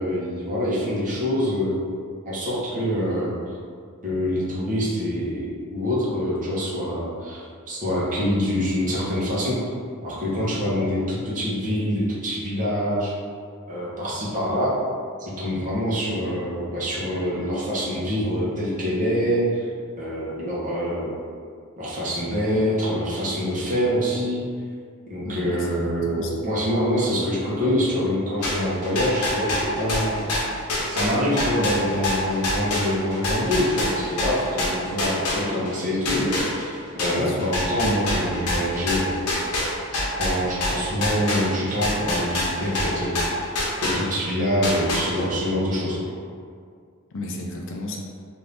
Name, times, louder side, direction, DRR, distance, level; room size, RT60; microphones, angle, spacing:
voice 1, 0.0-1.8 2.2-3.3 4.0-9.6 10.0-13.1 13.7-14.7 15.2-19.6 20.0-21.1 21.8-24.4 25.1-30.3 30.9-39.4 40.2-46.1, equal, 35° right, -8 dB, 0.9 m, -25 dB
voice 2, 25.2-26.3 37.1-37.5 47.1-48.0, left 1 dB, 60° left, 0 dB, 0.5 m, -33 dB
sound 1, 28.4-35.7 36.1-44.3 44.6-45.4, left 1 dB, 85° left, 0.8 m, -26 dB
2.6 x 2.6 x 3.4 m, 2.1 s
head